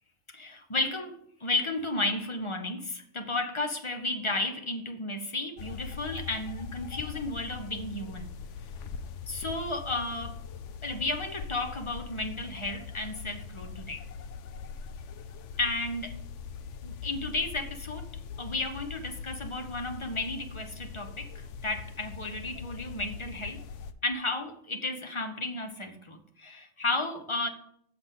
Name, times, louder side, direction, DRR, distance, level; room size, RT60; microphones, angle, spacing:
voice 1, 0.3-8.3 9.3-10.4 10.8-14.1 15.6-16.2 16.8-18.1 18.4-23.6 24.0-27.5, left 2 dB, 25° left, 6 dB, 0.8 m, -33 dB
sound 1, 5.6-23.9, left 6 dB, 70° left, 0.9 m, -42 dB
6.9 x 6.0 x 7.5 m, 0.69 s
omnidirectional pair, 1.4 m